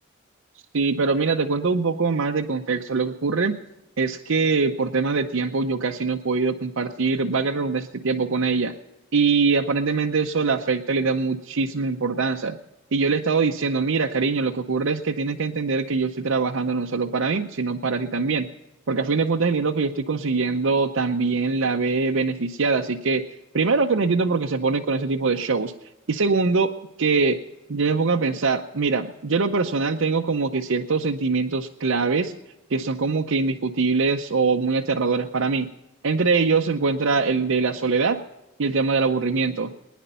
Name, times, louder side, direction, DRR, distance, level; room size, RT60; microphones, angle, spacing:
voice 1, 0.7-3.6 4.0-8.7 9.1-12.6 12.9-18.5 18.9-23.2 23.5-25.7 26.1-26.7 27.0-27.4 27.7-32.3 32.7-35.7 36.0-38.2 38.6-39.7, right 4 dB, 70° right, 2 dB, 0.7 m, -23 dB
20.5 x 10.0 x 5.5 m, 0.95 s
head